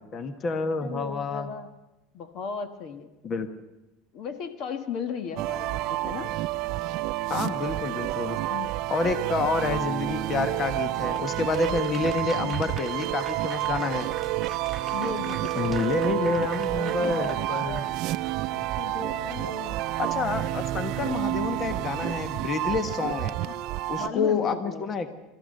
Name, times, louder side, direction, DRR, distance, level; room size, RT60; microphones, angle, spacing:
voice 1, 0.0-1.5 3.2-3.5 7.3-8.4 8.9-14.1 15.6-17.8 18.5-18.7 20.0-23.4 23.9-25.1, left 4 dB, 30° left, 9 dB, 1.5 m, -28 dB
voice 2, 0.8-1.7 2.1-3.1 4.1-6.4 8.5-8.8 12.2-12.6 14.9-19.8 23.4-24.9, left 6 dB, 50° left, 9 dB, 1.5 m, -37 dB
sound 1, 5.4-24.1, right 16 dB, 60° right, 0.6 m, -29 dB
Applause / Crowd, 11.1-18.4, right 4 dB, 15° right, 2.0 m, -44 dB
30.0 x 14.5 x 6.7 m, 1.0 s
supercardioid pair, 135°, 0 cm